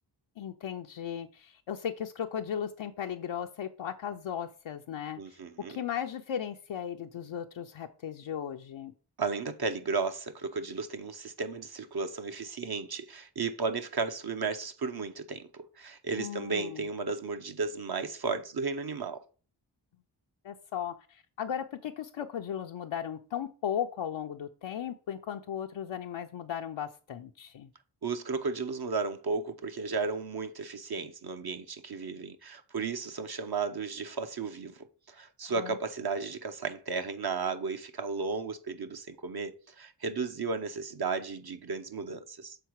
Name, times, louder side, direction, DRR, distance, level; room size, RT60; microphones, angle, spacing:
voice 1, 0.4-8.9 16.2-16.9 20.4-27.7 35.6-35.8, left 9 dB, 85° left, 0.6 m, -36 dB
voice 2, 5.2-5.7 9.2-19.2 28.0-42.6, right 4 dB, 55° right, 0.9 m, -34 dB
6.9 x 3.9 x 4.6 m
cardioid pair, 45°, 45 cm